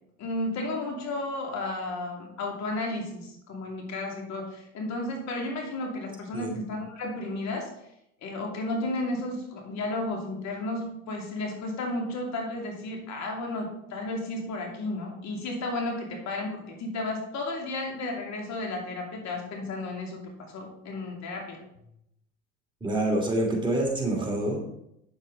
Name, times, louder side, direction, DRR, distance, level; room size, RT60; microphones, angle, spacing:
voice 1, 0.2-7.7 8.2-21.6, left 2 dB, 45° left, 1 dB, 2.7 m, -33 dB
voice 2, 22.8-24.6, right 1 dB, 15° right, -1 dB, 2.8 m, -27 dB
9.0 x 7.3 x 4.0 m, 0.80 s
hypercardioid pair, 90°, 38 cm